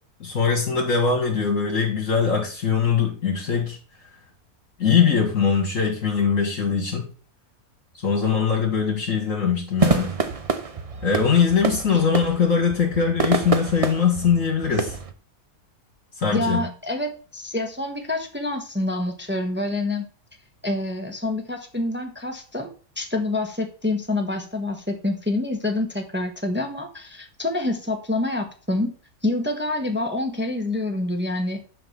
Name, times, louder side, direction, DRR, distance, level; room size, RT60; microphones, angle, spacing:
voice 1, 0.2-3.8 4.8-7.1 8.0-10.1 11.0-15.0 16.2-16.6, left 6 dB, 60° left, 2.8 m, -21 dB
sound 1, 9.8-15.1, right 4 dB, 30° right, 0.7 m, -27 dB
voice 2, 16.3-20.1 20.6-22.7 23.0-28.9 29.2-31.6, left 2 dB, 10° right, 1.2 m, -27 dB
11.0 x 3.9 x 7.2 m
omnidirectional pair, 1.6 m